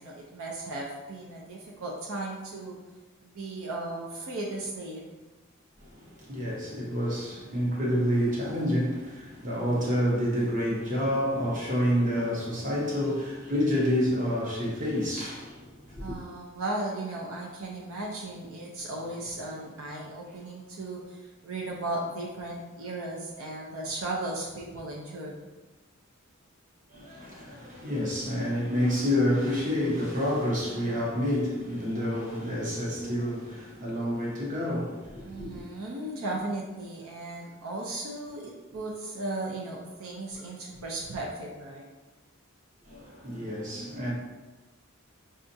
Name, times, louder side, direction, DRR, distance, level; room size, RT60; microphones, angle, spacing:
voice 1, 0.0-2.8 3.2-5.2 16.0-25.3 35.2-41.9, right 2 dB, 75° right, 0.5 m, -36 dB
voice 2, 5.8-16.2 26.9-35.6 42.8-44.1, equal, 40° right, 0.9 m, -28 dB
5.3 x 2.4 x 2.7 m
head